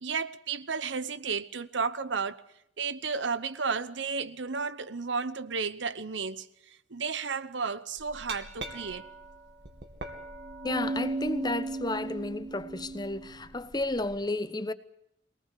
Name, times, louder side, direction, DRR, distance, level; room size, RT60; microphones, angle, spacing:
voice 1, 0.0-2.4 2.8-9.1, right 5 dB, 85° right, 1.0 m, -33 dB
Glass, 8.0-14.1, right 2 dB, 65° right, 2.5 m, -37 dB
voice 2, 10.6-14.7, left 2 dB, 20° left, 0.9 m, -32 dB
24.0 x 18.5 x 8.4 m
head